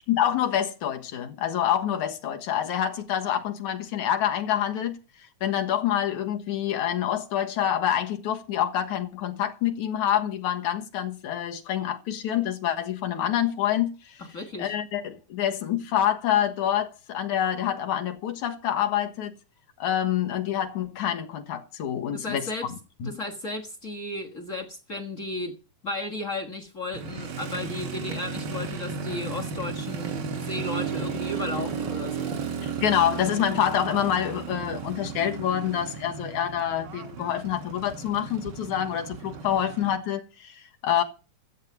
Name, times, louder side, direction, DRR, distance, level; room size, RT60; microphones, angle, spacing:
voice 1, 0.1-5.0 5.4-14.2 14.6-19.3 19.8-22.5 23.0-23.2 32.6-41.0, left 10 dB, 65° left, 2.6 m, -27 dB
voice 2, 14.2-14.7 22.1-22.7 23.0-25.6 25.8-32.4, left 2 dB, 45° left, 1.0 m, -34 dB
Motorcycle, 26.9-39.9, right 6 dB, 60° right, 1.1 m, -34 dB
13.0 x 8.4 x 7.2 m
omnidirectional pair, 3.8 m